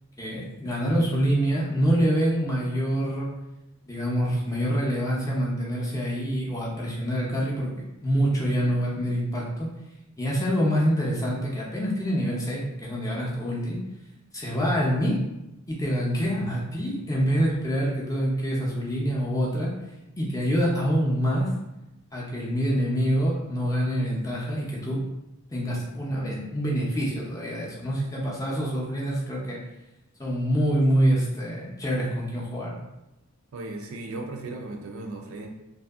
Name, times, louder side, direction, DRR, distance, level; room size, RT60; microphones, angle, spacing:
voice 1, 0.2-3.3 3.8-7.7 8.0-9.7 10.2-13.8 14.3-15.2 15.7-19.7 20.2-21.5 22.1-25.0 25.5-29.6 30.2-32.7, equal, 15° left, -4 dB, 0.5 m, -26 dB
voice 2, 33.5-35.5, right 2 dB, 70° right, 2 dB, 0.4 m, -36 dB
2.7 x 2.6 x 2.3 m, 0.96 s
head